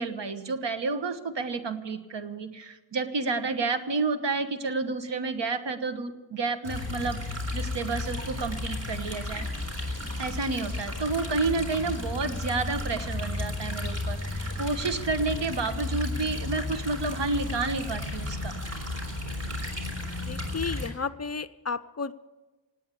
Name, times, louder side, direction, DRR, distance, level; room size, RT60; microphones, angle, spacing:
voice 1, 0.0-9.5 10.2-18.6, right 3 dB, 65° right, 10 dB, 1.3 m, -30 dB
sound 1, 6.6-20.9, left 2 dB, 35° right, 3.7 m, -33 dB
voice 2, 20.3-22.1, left 5 dB, 35° left, 15 dB, 0.5 m, -33 dB
18.0 x 8.5 x 8.5 m, 1.2 s
wide cardioid pair, 90°, 46 cm